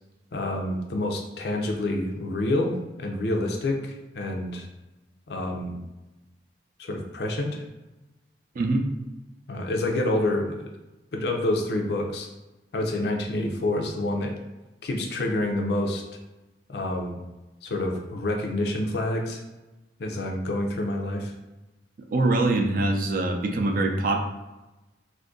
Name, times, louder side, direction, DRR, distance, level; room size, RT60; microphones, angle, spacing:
voice 1, 0.3-4.7 5.3-5.8 6.8-7.6 9.5-10.7 11.1-12.3 12.7-14.3 14.8-16.0 16.7-17.2 17.6-19.4 20.0-21.3, left 1 dB, 65° left, 2 dB, 0.5 m, -28 dB
voice 2, 22.1-24.2, right 2 dB, 50° right, 3 dB, 0.4 m, -23 dB
2.6 x 2.5 x 3.7 m, 1.1 s
head